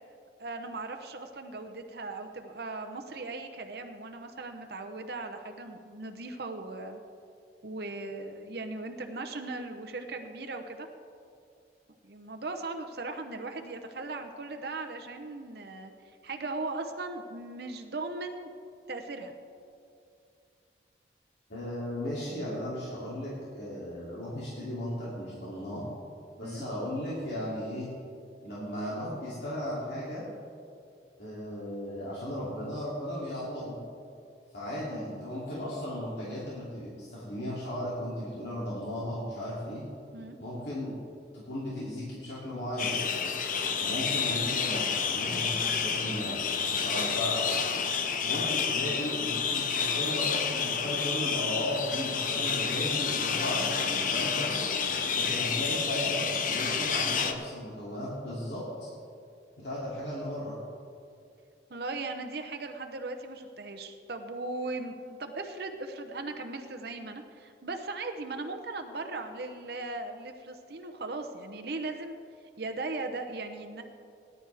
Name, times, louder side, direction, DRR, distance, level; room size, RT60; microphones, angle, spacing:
voice 1, 0.4-7.0 7.6-10.9 12.0-15.9 16.2-18.5 18.9-19.3 26.4-26.6 40.1-40.4 61.7-72.1 72.6-73.8, right 3 dB, 60° right, 5 dB, 0.8 m, -38 dB
voice 2, 21.5-25.8 26.4-27.9 28.4-30.2 31.2-33.8 34.5-39.9 40.4-40.9 41.3-43.0 43.8-46.5 46.8-47.6 48.2-54.7 55.1-56.2 56.5-58.9 59.6-60.5, equal, 70° left, -8 dB, 2.7 m, -36 dB
sound 1, 42.8-57.3, left 6 dB, 45° left, 0.8 m, -29 dB
18.5 x 10.5 x 3.4 m, 2.5 s
head